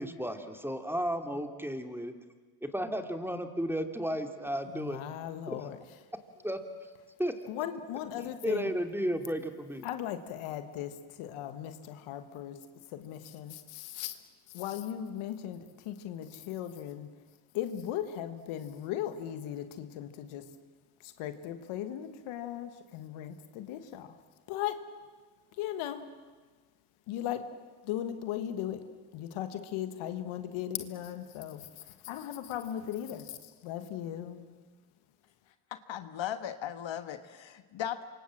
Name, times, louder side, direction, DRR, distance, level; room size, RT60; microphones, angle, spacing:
voice 1, 0.0-2.1 2.6-5.0 5.5-5.6 6.4-6.6 7.2-7.4 8.4-9.9, equal, 5° right, 6 dB, 2.8 m, -33 dB
voice 2, 4.7-5.8 7.5-8.7 9.8-12.6 12.9-14.2 14.5-17.1 17.5-20.4 21.0-24.2 24.5-24.8 25.6-26.0 27.1-27.5 27.8-28.8 29.1-34.4, left 11 dB, 85° left, 9 dB, 1.5 m, -37 dB
voice 3, 35.7-38.0, left 10 dB, 65° left, 11 dB, 1.4 m, -37 dB
27.0 x 24.5 x 7.6 m, 1.4 s
supercardioid pair, 55°, 49 cm